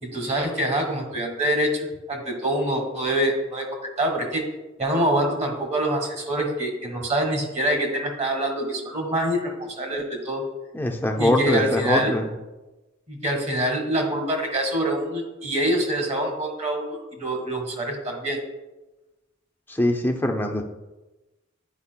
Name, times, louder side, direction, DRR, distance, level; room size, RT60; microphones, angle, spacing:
voice 1, 0.0-3.6 4.0-4.4 4.8-10.4 11.2-12.1 13.1-18.4, right 1 dB, 35° right, 2 dB, 1.4 m, -25 dB
voice 2, 10.7-12.3 19.7-20.6, left 1 dB, 10° left, 3 dB, 0.6 m, -22 dB
9.8 x 4.8 x 2.2 m, 1.1 s
head